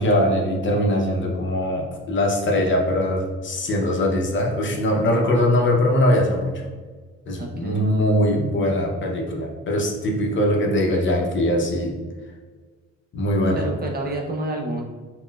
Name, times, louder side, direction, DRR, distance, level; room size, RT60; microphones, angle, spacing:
voice 1, 0.0-6.5 7.3-11.9 13.1-13.6, left 1 dB, 40° left, 0 dB, 0.6 m, -21 dB
voice 2, 5.1-5.5 7.4-8.2 13.6-14.8, right 2 dB, 30° right, 1 dB, 0.5 m, -30 dB
4.0 x 2.1 x 2.2 m, 1.4 s
cardioid pair, 90°, 30 cm